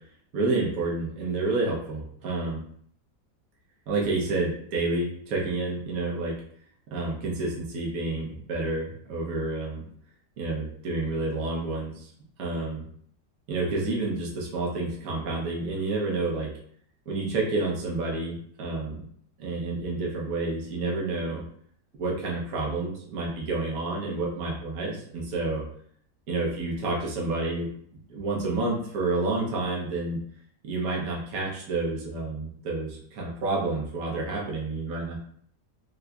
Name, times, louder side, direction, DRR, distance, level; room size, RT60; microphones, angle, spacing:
voice 1, 0.3-2.6 3.9-6.3 6.9-9.9 10.4-12.1 12.4-12.9 13.5-16.5 17.1-19.0 19.4-21.4 22.0-25.6 26.3-27.7 28.1-30.2 30.6-35.2, right 3 dB, 60° right, -4 dB, 1.2 m, -29 dB
3.7 x 3.0 x 2.3 m, 0.63 s
omnidirectional pair, 1.9 m